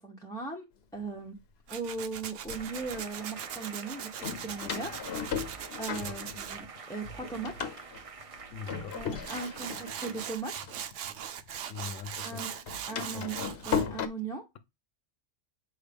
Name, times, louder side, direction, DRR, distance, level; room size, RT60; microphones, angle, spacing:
voice 1, 0.0-1.4 1.7-5.3 5.8-7.7 8.9-10.7 12.2-12.5 12.9-13.4 13.7-14.4, right 3 dB, 5° left, 0.6 m, -38 dB
Door, 1.0-1.1 1.9-3.0 4.2-6.8 7.0-11.6 11.8-14.1, left 7 dB, 60° left, 0.9 m, -37 dB
Tools, 1.7-6.6 8.9-9.0 9.2-13.9, right 9 dB, 85° right, 1.0 m, -40 dB
sound 1, 2.5-10.4, right 5 dB, 40° right, 0.5 m, -47 dB
voice 2, 8.5-9.0 11.7-12.4 13.0-13.3, left 6 dB, 90° left, 1.1 m, -41 dB
6.6 x 4.7 x 3.4 m
omnidirectional pair, 1.2 m